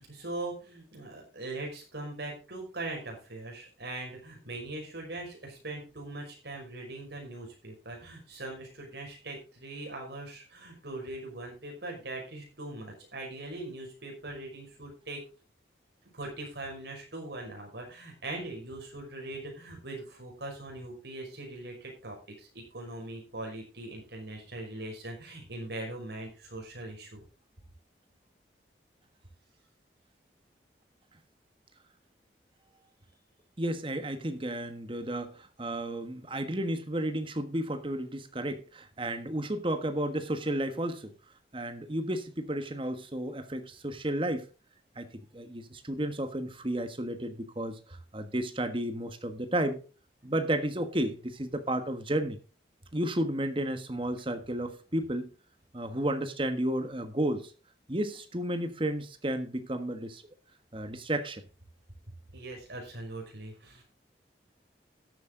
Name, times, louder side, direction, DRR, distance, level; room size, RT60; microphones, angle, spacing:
voice 1, 0.0-15.2 16.1-27.2 62.3-63.8, right 2 dB, 75° right, 5.6 m, -41 dB
voice 2, 33.6-41.1 41.5-44.5 45.0-45.1 45.3-49.8 50.2-52.4 52.9-55.3 55.7-57.5 57.9-60.2 60.7-61.4, right 1 dB, 30° right, 1.4 m, -32 dB
13.5 x 8.6 x 3.8 m
head